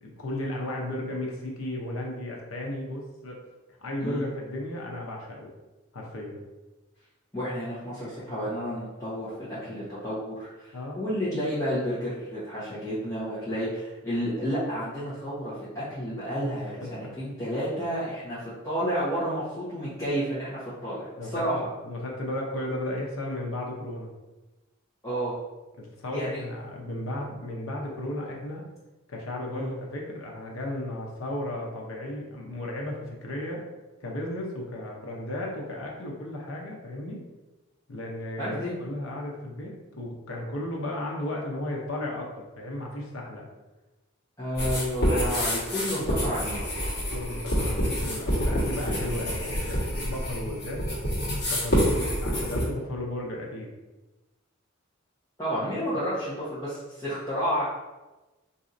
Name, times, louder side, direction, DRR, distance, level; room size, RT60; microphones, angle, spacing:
voice 1, 0.0-3.4 3.8-5.5 5.9-6.4 10.7-11.0 16.8-17.2 21.2-24.1 25.8-28.7 29.1-33.6 34.0-37.2 37.9-43.5 45.9-46.0 47.1-50.9 51.5-53.7, left 1 dB, 80° left, -1 dB, 0.7 m, -34 dB
voice 2, 7.3-21.7 25.0-25.4 26.1-26.4 29.5-29.7 38.4-38.7 44.4-46.6 51.8-52.0 55.4-57.6, equal, 15° left, -13 dB, 0.9 m, -31 dB
sound 1, 44.6-52.6, equal, 50° left, 1.3 m, -27 dB
4.0 x 2.7 x 2.5 m, 1.1 s
head